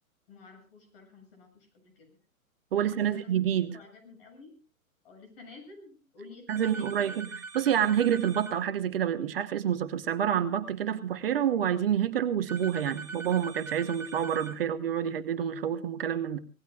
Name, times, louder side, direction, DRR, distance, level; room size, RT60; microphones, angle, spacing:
voice 1, 0.3-2.2 2.8-3.3 3.7-4.6 5.0-7.2, left 3 dB, 40° left, 4 dB, 7.5 m, -51 dB
voice 2, 2.7-3.8 6.5-7.3 7.5-16.4, right 9 dB, 40° right, 11 dB, 1.2 m, -28 dB
sound 1, 6.5-8.6 12.5-14.6, right 4 dB, 5° right, 2.7 m, -42 dB
25.5 x 18.5 x 2.4 m, 0.33 s
figure-of-eight pair, 115°, 42 cm